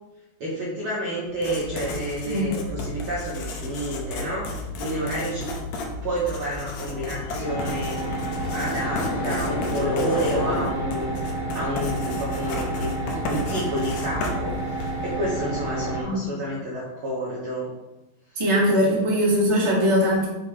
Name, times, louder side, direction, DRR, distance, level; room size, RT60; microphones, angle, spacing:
voice 1, 0.4-5.6 6.0-8.0 8.5-12.9 13.2-17.7 18.3-18.4 18.9-19.0, right 1 dB, 75° right, -5 dB, 1.2 m, -30 dB
Writing, 1.3-15.1, left 2 dB, 70° left, 1.8 m, -34 dB
sound 1, 3.7-10.7, left 4 dB, 90° left, 1.6 m, -34 dB
sound 2, 7.4-16.0, right 2 dB, 35° left, 1.6 m, -30 dB
voice 2, 18.3-20.3, equal, 15° right, -6 dB, 1.1 m, -21 dB
6.4 x 3.9 x 5.4 m, 1.0 s
omnidirectional pair, 4.1 m